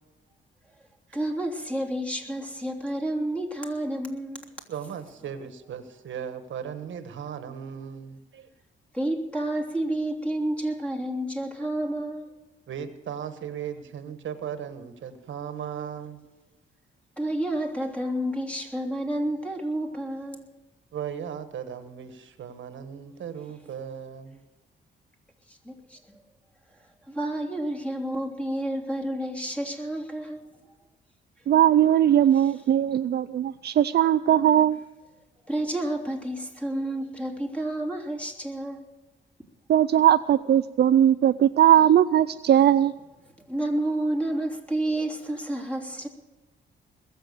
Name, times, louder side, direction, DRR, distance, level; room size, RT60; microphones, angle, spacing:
voice 1, 1.1-4.5 8.9-12.3 17.2-20.5 25.5-26.2 27.1-30.4 35.5-38.8 43.5-46.1, right 1 dB, 5° left, 2 dB, 3.1 m, -30 dB
voice 2, 4.7-8.5 12.7-16.2 20.9-24.4, right 8 dB, 70° right, 10 dB, 1.4 m, -37 dB
voice 3, 31.5-34.8 39.7-42.9, right 11 dB, 55° right, 12 dB, 0.5 m, -19 dB
21.0 x 7.5 x 6.7 m, 1.2 s
cardioid pair, 80°, 20 cm